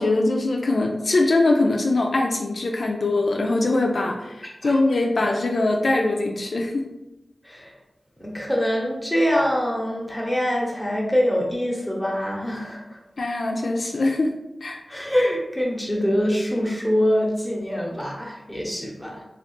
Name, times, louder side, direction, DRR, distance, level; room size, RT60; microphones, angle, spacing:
voice 1, 0.0-6.9 13.2-14.3 14.6-14.8, left 2 dB, 70° left, 1 dB, 0.4 m, -22 dB
voice 2, 4.4-4.8 7.4-7.7 8.2-13.0 14.9-19.2, equal, 5° left, -3 dB, 0.9 m, -24 dB
3.0 x 2.4 x 3.1 m, 0.98 s
wide cardioid pair, 60°, 0 cm